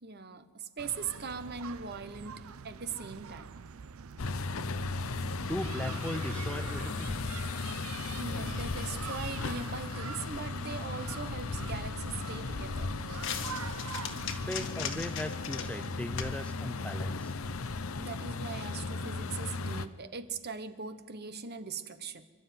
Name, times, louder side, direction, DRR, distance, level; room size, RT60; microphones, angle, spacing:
voice 1, 0.0-3.5 8.2-12.9 18.0-22.3, right 5 dB, 50° right, 11 dB, 1.2 m, -40 dB
sound 1, 0.8-14.7, right 6 dB, 85° right, 0.6 m, -45 dB
sound 2, 4.2-19.9, left 3 dB, 80° left, 0.8 m, -36 dB
voice 2, 5.4-7.2 14.3-17.3, left 1 dB, 5° left, 10 dB, 0.8 m, -38 dB
sound 3, 11.1-18.0, left 7 dB, 60° left, 1.7 m, -42 dB
27.0 x 12.5 x 9.4 m, 1.5 s
head